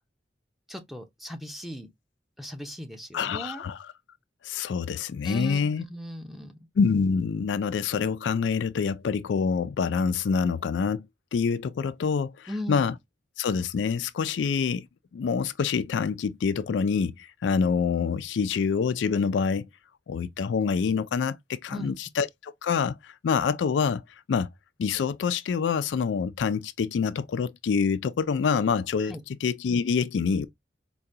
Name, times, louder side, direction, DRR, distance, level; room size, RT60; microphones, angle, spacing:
voice 1, 0.7-1.9 2.4-3.6 5.2-6.7 12.5-12.9 21.7-22.0 29.0-29.2, equal, ahead, 0.7 m, -37 dB
voice 2, 3.1-3.8 4.4-5.8 6.8-11.1 11.3-12.9 13.4-14.9 15.1-19.7 20.1-24.0 24.3-24.5 24.8-30.5, left 6 dB, 80° left, 0.4 m, -26 dB
4.7 x 2.2 x 2.7 m
head